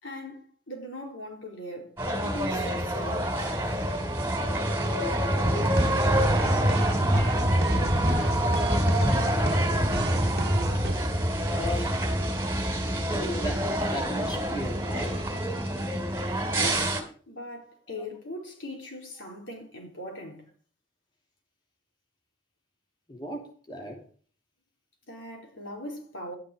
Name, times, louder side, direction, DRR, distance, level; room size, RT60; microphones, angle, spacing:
voice 1, 0.0-1.9 2.2-3.3 16.5-20.5 25.1-26.3, left 1 dB, 90° left, 4.2 m, -40 dB
sound 1, 2.0-17.0, right 1 dB, 10° right, 2.8 m, -26 dB
sound 2, 5.6-10.9, right 2 dB, 55° right, 1.1 m, -34 dB
voice 2, 11.5-11.9 13.1-13.6 13.9-15.2 17.9-18.0 23.1-24.0, left 1 dB, 25° left, 2.8 m, -36 dB
12.5 x 10.0 x 5.0 m
head